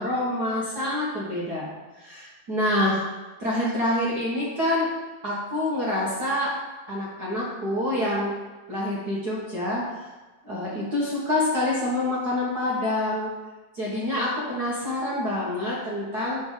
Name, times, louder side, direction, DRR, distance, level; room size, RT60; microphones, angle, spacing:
voice 1, 0.0-1.7 2.0-3.0 3.4-4.9 5.2-6.5 6.9-8.4 8.7-9.8 10.4-13.3 13.7-16.4, left 1 dB, 50° right, -7 dB, 1.2 m, -26 dB
7.8 x 3.6 x 6.4 m, 1.2 s
omnidirectional pair, 3.9 m